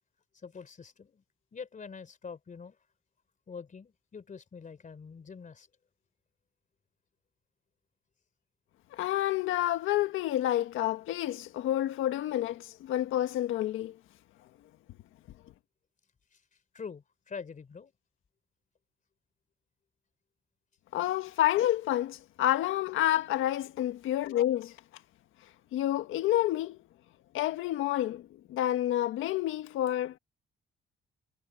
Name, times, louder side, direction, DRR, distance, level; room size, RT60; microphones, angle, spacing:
voice 1, 0.4-1.2 1.5-2.8 3.5-5.7 16.3-16.4 16.7-17.9, left 5 dB, 40° left, 4.0 m, -45 dB
voice 2, 8.9-13.9 20.9-24.7 25.7-26.8 27.3-30.2, left 13 dB, 90° left, 1.6 m, -29 dB
cardioid pair, 90°, 20 cm